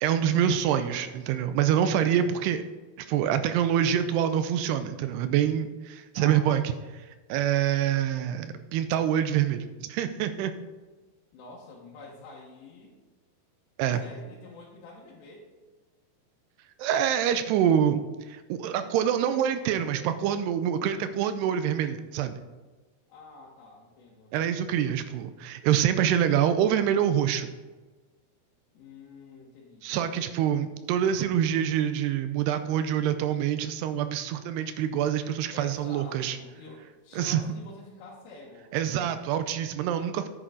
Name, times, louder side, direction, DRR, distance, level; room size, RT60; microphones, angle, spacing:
voice 1, 0.0-2.6 3.0-6.6 7.3-10.5 13.8-14.0 16.8-18.0 18.3-22.4 24.3-27.5 29.8-36.4 37.2-37.4 38.7-40.3, right 9 dB, 85° right, 10 dB, 2.6 m, -26 dB
voice 2, 1.7-2.2 6.2-6.5 11.3-13.0 14.0-15.5 23.1-24.3 28.7-29.9 35.5-38.8, left 3 dB, 85° left, -5 dB, 3.4 m, -47 dB
10.0 x 9.4 x 3.9 m, 1.3 s
omnidirectional pair, 4.8 m